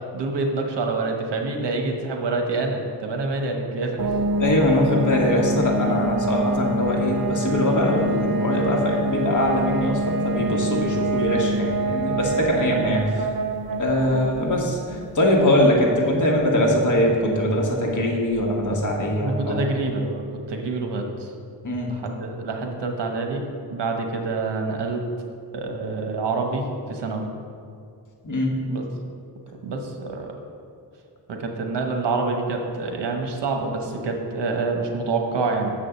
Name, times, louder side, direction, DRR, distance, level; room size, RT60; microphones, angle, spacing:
voice 1, 0.1-4.0 12.5-12.9 18.9-20.2 20.5-21.3 21.9-23.4 23.7-25.0 25.5-27.3 28.7-28.8 29.6-30.3 31.3-35.7, right 3 dB, 80° right, 3 dB, 1.2 m, -27 dB
sound 1, 4.0-18.6, right 2 dB, 60° right, 0.7 m, -27 dB
voice 2, 4.4-13.2 13.8-19.6 21.6-22.0 28.2-28.5, left 1 dB, 45° left, -1 dB, 1.5 m, -22 dB
7.0 x 4.9 x 7.0 m, 2.3 s
wide cardioid pair, 100°, 41 cm